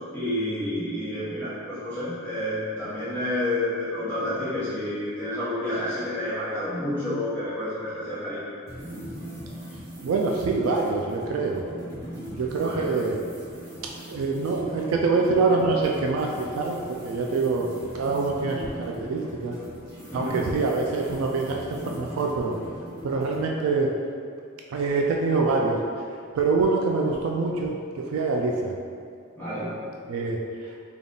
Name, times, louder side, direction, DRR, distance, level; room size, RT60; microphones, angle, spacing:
voice 1, 0.1-8.4 12.6-12.9 20.1-20.4 29.4-29.7, left 1 dB, 10° left, -14 dB, 1.0 m, -29 dB
sound 1, 8.7-23.5, equal, 55° right, 1.2 m, -39 dB
voice 2, 10.0-11.6 12.3-13.2 14.1-17.7 17.9-19.6 20.1-22.5 23.0-23.9 24.7-25.8 26.3-28.7 30.1-30.4, right 3 dB, 85° right, 0 dB, 0.3 m, -25 dB
3.4 x 2.3 x 3.8 m, 2.4 s
head